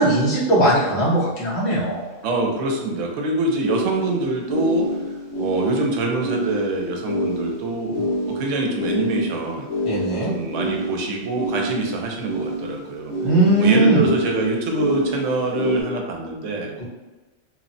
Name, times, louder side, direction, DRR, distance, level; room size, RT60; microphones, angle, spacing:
voice 1, 0.0-2.0 9.8-10.3 13.2-14.0 16.8-16.9, right 2 dB, 60° left, -9 dB, 1.3 m, -18 dB
sound 1, 1.7-1.8 3.6-15.8, equal, 85° left, 1.2 m, -27 dB
voice 2, 2.2-5.1 5.4-8.0 8.3-9.7 10.3-13.1 13.6-16.8, right 2 dB, 85° right, 1 dB, 0.9 m, -25 dB
3.0 x 2.0 x 2.6 m, 1.2 s
omnidirectional pair, 1.2 m